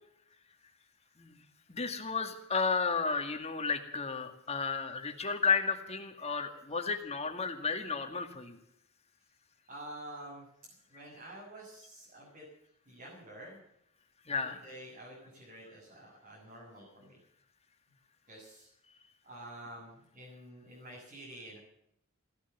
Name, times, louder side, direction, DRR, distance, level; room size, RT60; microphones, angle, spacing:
voice 1, 1.7-8.6 14.3-14.6, left 5 dB, 30° left, 5 dB, 2.1 m, -33 dB
voice 2, 9.7-10.5 10.9-12.4 12.9-13.6 14.3-17.2 18.3-18.7 19.2-21.6, right 1 dB, 40° right, -5 dB, 7.5 m, -49 dB
17.0 x 11.5 x 7.3 m, 0.76 s
head